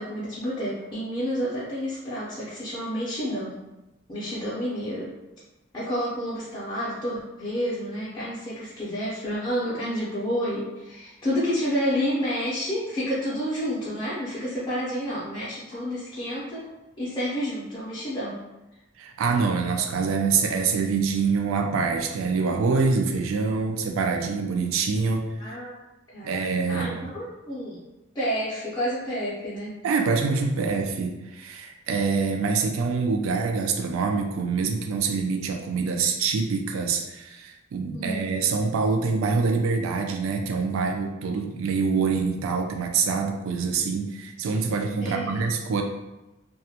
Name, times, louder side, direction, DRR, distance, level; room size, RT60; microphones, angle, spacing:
voice 1, 0.0-3.5 4.1-5.1 5.7-16.7 17.0-18.4 25.4-25.8 26.1-27.8 28.1-29.7 37.9-38.3 45.0-45.4, equal, 20° left, -9 dB, 0.5 m, -29 dB
voice 2, 19.0-25.6 26.2-27.1 29.8-45.8, right 4 dB, 80° right, 3 dB, 0.3 m, -25 dB
2.3 x 2.1 x 2.7 m, 1.0 s
head